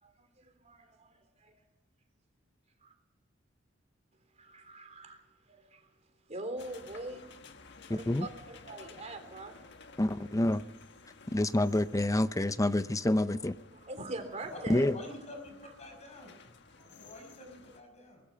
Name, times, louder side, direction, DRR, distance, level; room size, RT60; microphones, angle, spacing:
voice 1, 0.0-1.6 2.8-2.9 4.4-5.9 6.3-7.3 7.9-9.6 13.7-15.2 16.7-17.1, right 2 dB, 35° right, 3.5 m, -43 dB
sound 1, 6.6-17.8, left 4 dB, 60° left, 1.5 m, -55 dB
voice 2, 7.9-8.3 10.0-10.6 11.3-13.5 14.7-15.0, left 1 dB, 15° left, 0.6 m, -27 dB
voice 3, 14.9-16.3 16.9-18.2, left 1 dB, 35° left, 5.7 m, -48 dB
23.0 x 20.0 x 5.8 m
head